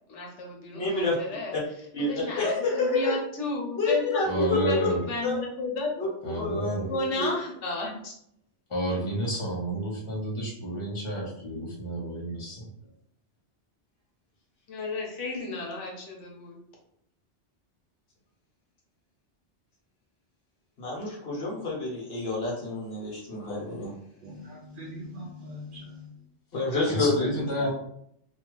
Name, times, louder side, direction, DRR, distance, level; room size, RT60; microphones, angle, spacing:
voice 1, 0.1-1.6 2.0-5.9 6.8-8.1 14.7-16.6, left 2 dB, 85° left, -1 dB, 1.1 m, -33 dB
voice 2, 0.7-1.2 1.5-1.6 1.9-3.1 3.8-4.9 5.2-5.4 6.0-7.3 20.8-23.9 26.5-27.3, left 3 dB, 60° left, -4 dB, 1.2 m, -28 dB
voice 3, 4.2-5.1 6.2-6.9 8.7-12.7 26.9-27.7, right 1 dB, 30° left, -4 dB, 0.9 m, -30 dB
voice 4, 24.2-26.2 27.3-27.7, right 1 dB, 60° right, 0 dB, 0.6 m, -40 dB
2.7 x 2.3 x 3.0 m, 0.71 s
omnidirectional pair, 1.2 m